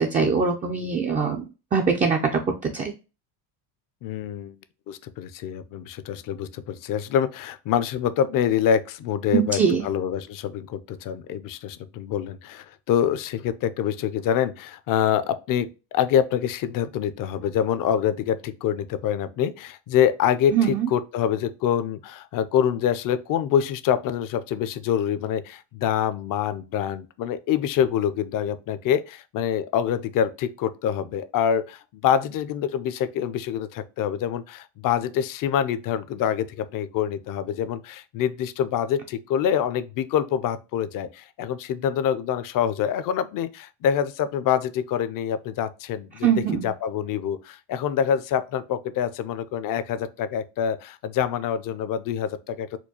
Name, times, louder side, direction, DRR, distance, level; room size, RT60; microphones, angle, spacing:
voice 1, 0.0-1.4 1.7-2.4 2.7-2.9 9.3-9.8 20.5-20.9 46.2-46.7, right 6 dB, 20° right, 0.3 m, -22 dB
voice 2, 4.0-4.5 4.9-52.8, left 9 dB, 45° left, 0.4 m, -26 dB
4.4 x 2.3 x 2.7 m
cardioid pair, 105°, 47 cm